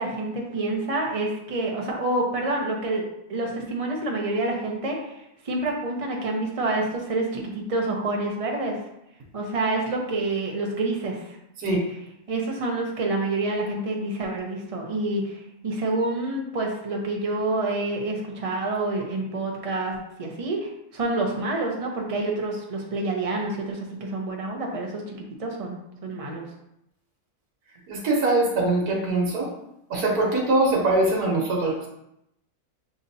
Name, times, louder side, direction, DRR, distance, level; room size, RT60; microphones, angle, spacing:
voice 1, 0.0-3.0 3.3-5.2 5.4-8.8 9.3-11.4 12.3-26.5, right 2 dB, 35° right, 0 dB, 0.6 m, -28 dB
voice 2, 27.9-29.5 29.9-31.9, right 2 dB, 85° right, -2 dB, 1.5 m, -22 dB
7.2 x 2.6 x 2.7 m, 0.81 s
omnidirectional pair, 1.6 m